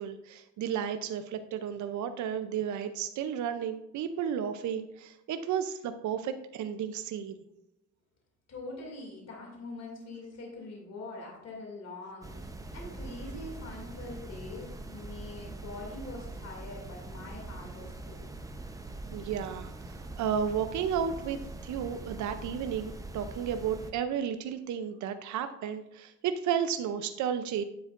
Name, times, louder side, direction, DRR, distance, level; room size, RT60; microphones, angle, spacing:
voice 1, 0.0-7.4 19.1-27.6, right 8 dB, 70° right, 9 dB, 0.6 m, -33 dB
voice 2, 8.5-18.3, left 2 dB, 60° left, -1 dB, 2.5 m, -44 dB
sound 1, 12.2-23.9, right 2 dB, 10° right, 0.7 m, -43 dB
9.4 x 7.6 x 2.5 m, 0.85 s
cardioid pair, 90°, 30 cm